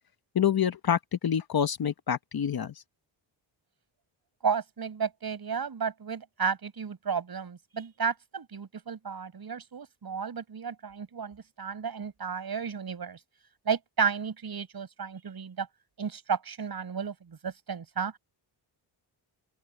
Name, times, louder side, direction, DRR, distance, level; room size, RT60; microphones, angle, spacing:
voice 1, 0.3-2.7, left 8 dB, 50° left, 1.3 m, -27 dB
voice 2, 4.4-13.2 13.7-15.7 16.0-18.1, right 6 dB, 50° right, 5.9 m, -33 dB
open air
cardioid pair, 80°, 48 cm